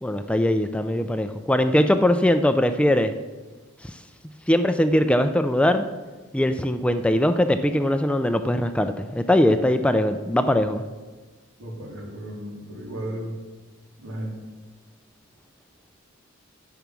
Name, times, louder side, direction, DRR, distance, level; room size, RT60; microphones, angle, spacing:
voice 1, 0.0-3.1 3.8-3.9 4.5-5.9 6.3-10.8, left 1 dB, 5° left, 9 dB, 0.4 m, -21 dB
voice 2, 11.6-13.3 14.0-14.3, right 1 dB, 90° right, -3 dB, 3.6 m, -34 dB
10.5 x 8.5 x 6.1 m, 1.2 s
head